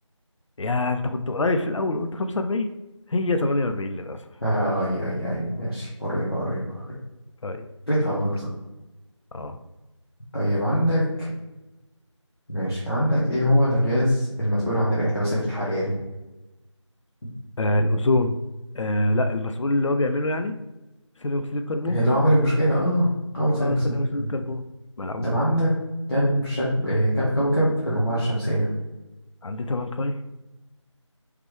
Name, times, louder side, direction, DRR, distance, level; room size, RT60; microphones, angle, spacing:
voice 1, 0.6-2.7 3.1-4.2 7.4-7.7 9.3-9.6 17.6-18.4 18.7-20.6 21.2-22.0 23.6-24.6 25.0-25.4 29.4-30.1, left 2 dB, 75° left, 8 dB, 0.4 m, -25 dB
voice 2, 4.4-6.9 7.9-8.5 10.3-11.3 12.5-15.9 21.9-23.1 23.3-24.3 25.2-25.7 26.1-28.7, equal, 55° left, -9 dB, 1.1 m, -23 dB
3.3 x 3.2 x 3.2 m, 1.0 s
figure-of-eight pair, 170°, 16 cm